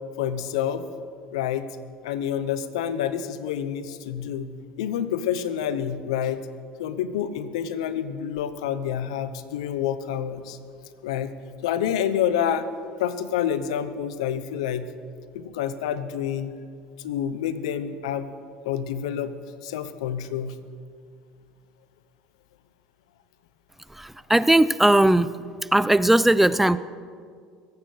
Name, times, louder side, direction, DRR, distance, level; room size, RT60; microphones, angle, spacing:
voice 1, 0.2-0.8 1.3-1.7 2.0-6.4 6.8-10.6 11.0-11.3 11.6-12.7 13.0-14.9 15.3-16.5 17.0-18.3 18.6-19.3 19.6-20.6, left 9 dB, 80° left, 13 dB, 0.9 m, -28 dB
voice 2, 24.0-25.4 25.7-26.8, right 1 dB, 5° right, 16 dB, 0.5 m, -18 dB
23.0 x 8.7 x 6.3 m, 2.1 s
hypercardioid pair, 75°, 3 cm